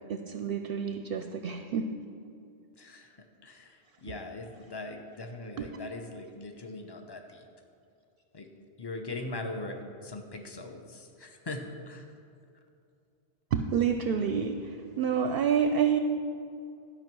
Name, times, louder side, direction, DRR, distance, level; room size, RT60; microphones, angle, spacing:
voice 1, 0.1-1.9 5.6-5.7 13.5-16.0, right 7 dB, 65° right, 7 dB, 0.7 m, -28 dB
voice 2, 2.8-3.1 3.4-7.5 8.3-8.5 8.8-12.0, left 2 dB, 25° left, 4 dB, 0.8 m, -40 dB
12.0 x 5.6 x 6.1 m, 2.5 s
omnidirectional pair, 1.1 m